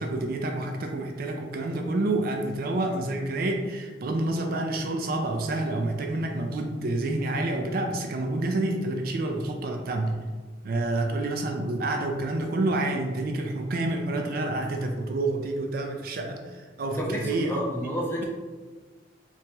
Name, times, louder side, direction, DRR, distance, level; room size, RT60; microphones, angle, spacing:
voice 1, 0.0-10.2 10.6-17.6, right 2 dB, 55° right, 3 dB, 0.4 m, -28 dB
voice 2, 17.0-18.2, equal, 10° left, -3 dB, 0.6 m, -30 dB
3.0 x 2.9 x 3.3 m, 1.4 s
head